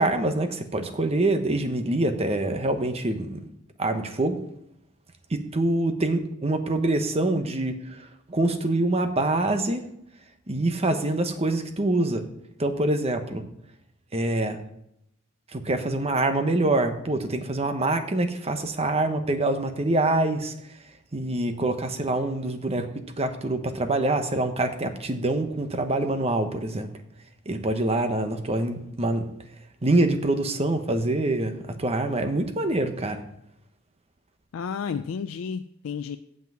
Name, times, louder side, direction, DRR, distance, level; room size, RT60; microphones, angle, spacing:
voice 1, 0.0-3.4 3.8-4.4 5.3-8.0 8.3-9.8 10.5-12.2 12.6-13.4 14.1-14.6 15.5-20.5 21.1-26.9 27.5-29.3 29.8-33.2, right 2 dB, 30° right, 7 dB, 0.9 m, -25 dB
voice 2, 34.5-36.2, left 6 dB, 75° left, 9 dB, 0.4 m, -31 dB
7.5 x 5.8 x 7.5 m, 0.77 s
head